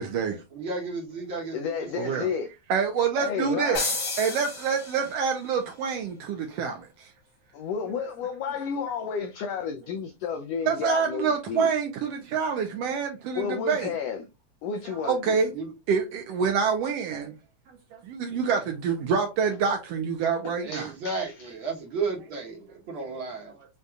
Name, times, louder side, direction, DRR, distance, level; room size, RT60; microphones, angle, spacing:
voice 1, 0.0-0.4 2.0-2.3 2.7-3.9 4.2-7.1 10.7-13.9 14.8-15.5 15.9-17.3 17.9-20.9 23.1-23.2, right 6 dB, 80° right, 1.5 m, -27 dB
voice 2, 0.5-2.3 15.5-15.7 20.6-23.5, right 3 dB, 55° right, 1.5 m, -33 dB
voice 3, 1.5-2.5 3.2-3.9 7.5-11.7 13.3-14.2 14.6-15.4 20.4-21.5, left 6 dB, 85° left, 1.4 m, -32 dB
sound 1, 3.7-5.4, left 3 dB, 45° left, 1.1 m, -32 dB
6.4 x 2.7 x 2.3 m
omnidirectional pair, 3.3 m